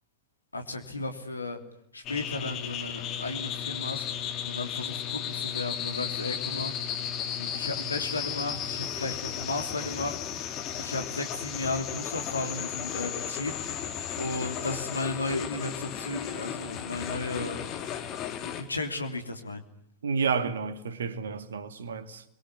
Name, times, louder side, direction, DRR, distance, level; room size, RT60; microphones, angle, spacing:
voice 1, 0.5-1.6 1.9-6.7 7.4-10.1 10.5-13.6 14.2-17.7 18.4-19.6, left 2 dB, 80° left, 3.1 m, -34 dB
sound 1, 2.0-18.6, left 9 dB, 35° left, 3.3 m, -34 dB
voice 2, 20.0-22.2, right 5 dB, 65° right, 2.2 m, -30 dB
29.5 x 22.5 x 8.3 m
figure-of-eight pair, 90°, 0 cm